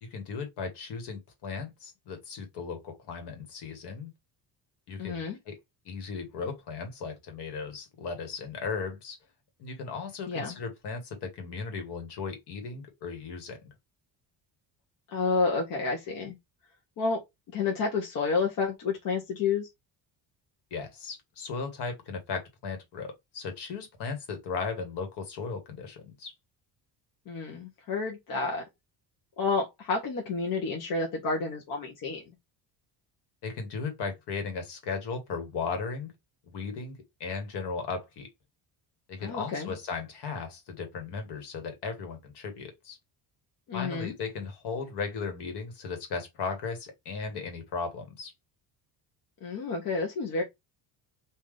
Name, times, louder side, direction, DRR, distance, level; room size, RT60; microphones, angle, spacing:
voice 1, 0.0-4.1 4.9-5.6 5.8-9.2 9.6-13.6 20.7-26.3 33.4-36.1 36.4-38.3 39.1-43.0 43.7-48.3, left 5 dB, 65° left, 1.5 m, -36 dB
voice 2, 5.0-5.4 10.3-10.5 15.1-16.3 17.0-17.2 17.5-19.7 27.3-28.6 29.4-32.2 39.2-39.7 43.7-44.1 49.4-50.4, left 4 dB, 50° left, 0.9 m, -30 dB
3.8 x 2.6 x 3.3 m
cardioid pair, 180°, 44 cm